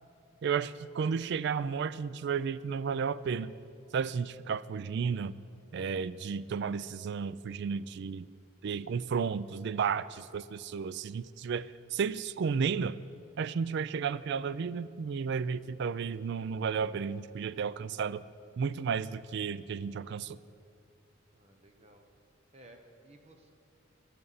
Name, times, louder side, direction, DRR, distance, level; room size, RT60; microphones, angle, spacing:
voice 1, 0.4-3.5 3.9-5.4 5.7-8.3 8.6-13.0 13.4-18.2 18.6-20.4, right 6 dB, 55° right, 17 dB, 0.3 m, -33 dB
voice 2, 21.3-22.1 22.5-23.5, right 1 dB, 30° right, 4 dB, 0.9 m, -57 dB
20.0 x 11.0 x 4.1 m, 2.5 s
head